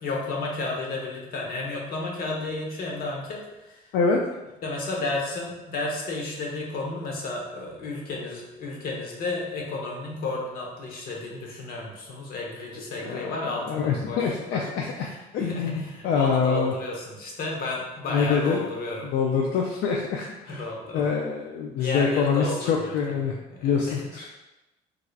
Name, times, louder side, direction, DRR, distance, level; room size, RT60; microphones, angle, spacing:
voice 1, 0.0-3.9 4.6-14.6 15.0-19.1 20.5-21.1 21.7-23.2 23.5-24.0, left 2 dB, 60° left, -1 dB, 0.9 m, -32 dB
voice 2, 13.6-16.7 18.1-18.6 19.1-20.6 20.9-23.4 23.6-24.3, left 5 dB, 75° left, 0 dB, 0.4 m, -25 dB
3.6 x 3.3 x 2.4 m, 1.0 s
cardioid pair, 110°, 17 cm